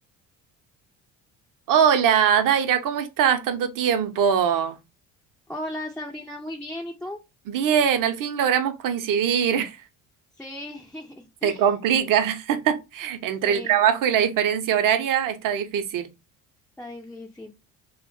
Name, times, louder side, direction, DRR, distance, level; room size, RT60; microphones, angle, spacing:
voice 1, 1.7-4.8 7.5-9.8 11.4-16.1, right 8 dB, 55° right, 0.7 m, -22 dB
voice 2, 5.5-7.2 10.4-11.7 13.4-13.8 16.8-17.5, left 1 dB, 5° left, 0.3 m, -36 dB
2.3 x 2.0 x 3.7 m
supercardioid pair, 70°, 40 cm